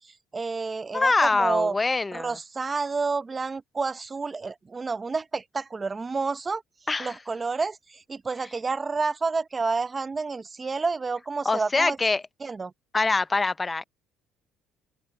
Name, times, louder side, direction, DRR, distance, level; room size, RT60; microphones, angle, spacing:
voice 1, 0.0-1.7 2.1-6.6 7.0-12.0 12.4-12.7, right 4 dB, 25° right, 0.8 m, -29 dB
voice 2, 0.9-2.4 6.9-7.2 11.4-12.2 12.9-13.8, left 3 dB, 20° left, 0.6 m, -24 dB
open air
cardioid pair, 110°, 0 cm